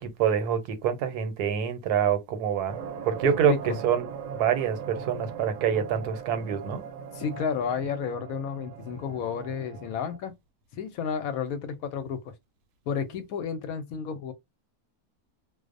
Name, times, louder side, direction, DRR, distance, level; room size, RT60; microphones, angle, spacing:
voice 1, 0.0-2.8 3.1-4.0 4.3-6.8, right 8 dB, 85° right, 1.2 m, -26 dB
sound 1, 2.7-10.2, right 7 dB, 70° right, 0.8 m, -40 dB
voice 2, 3.2-3.8 7.1-10.3 10.8-12.3 12.9-14.3, left 6 dB, 75° left, 1.0 m, -31 dB
2.5 x 2.0 x 2.4 m
omnidirectional pair, 1.6 m